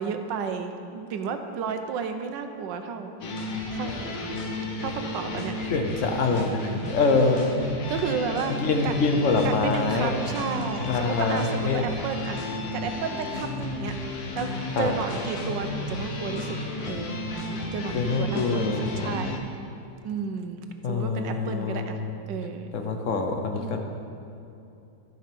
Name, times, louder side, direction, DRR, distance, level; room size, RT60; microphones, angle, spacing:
voice 1, 0.0-3.1 3.7-4.1 4.8-5.5 6.5-6.8 7.9-8.9 9.4-12.4 12.7-13.9 14.3-14.5 14.8-16.6 16.8-17.3 17.7-19.4 20.0-22.0 22.3-22.7 23.5-23.8, right 6 dB, 80° right, 7 dB, 1.4 m, -32 dB
sound 1, 3.2-19.4, left 1 dB, 90° left, 1.7 m, -33 dB
voice 2, 5.7-7.5 8.6-10.1 10.9-11.8 14.8-14.9 17.9-19.1 20.8-22.1 22.7-23.8, left 4 dB, 55° left, 4 dB, 1.0 m, -25 dB
14.0 x 5.4 x 5.2 m, 2.7 s
omnidirectional pair, 1.9 m